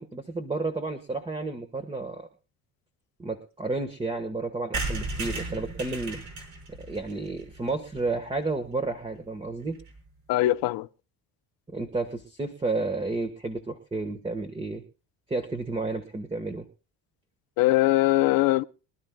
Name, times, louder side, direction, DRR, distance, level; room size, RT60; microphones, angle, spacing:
voice 1, 0.0-2.3 3.2-6.2 6.9-9.8 11.7-14.8 15.3-16.6, right 3 dB, 15° right, 1.4 m, -31 dB
sound 1, 4.7-8.4 8.8-8.9 9.1-9.2 9.4-9.5 9.7-10.0, right 3 dB, 55° right, 5.7 m, -35 dB
voice 2, 10.3-10.9 17.6-18.6, left 16 dB, 80° left, 0.7 m, -21 dB
24.5 x 12.0 x 2.3 m
cardioid pair, 125°, 35 cm